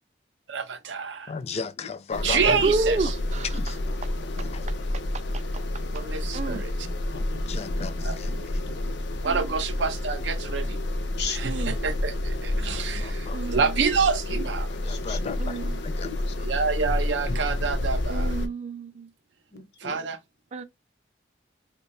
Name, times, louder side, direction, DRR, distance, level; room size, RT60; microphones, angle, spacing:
voice 1, 0.5-1.3 2.2-3.1 5.9-6.7 8.0-8.2 9.2-10.8 11.3-14.7 16.4-18.3 19.8-20.2, right 5 dB, 90° right, 0.6 m, -27 dB
voice 2, 1.3-2.6 3.5-3.8 4.4-4.7 7.3-8.6 12.5-13.4 14.7-16.1, left 4 dB, 35° left, 0.4 m, -36 dB
sound 1, 2.1-18.5, left 1 dB, 90° left, 0.5 m, -29 dB
voice 3, 2.6-3.5 5.3-5.4 6.3-6.7 9.2-9.5 11.4-11.8 13.3-13.8 15.4-15.8 18.1-19.1 20.5-20.6, right 3 dB, 40° right, 0.4 m, -30 dB
voice 4, 6.4-7.7 8.2-9.2 11.2-11.4 14.3-14.4 14.8-15.4 15.6-15.7 16.0-16.3 19.5-20.0, left 5 dB, 65° left, 0.8 m, -39 dB
3.0 x 2.2 x 4.2 m
head